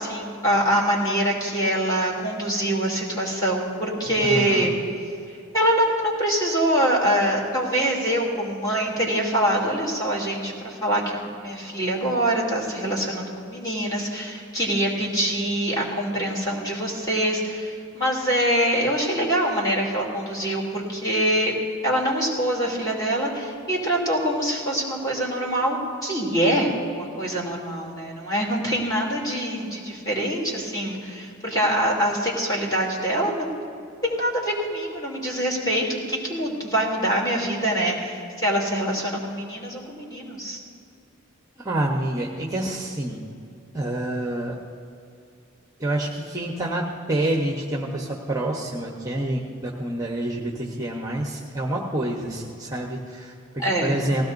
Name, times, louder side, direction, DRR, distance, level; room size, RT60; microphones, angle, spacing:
voice 1, 0.0-4.7 5.5-21.6 21.8-33.5 34.0-40.6 53.6-54.0, right 1 dB, 20° left, -3 dB, 2.9 m, -24 dB
voice 2, 4.2-4.7 41.6-43.2 43.7-44.5 45.8-54.2, right 1 dB, 15° right, -1 dB, 1.0 m, -27 dB
19.5 x 16.0 x 2.7 m, 2.5 s
head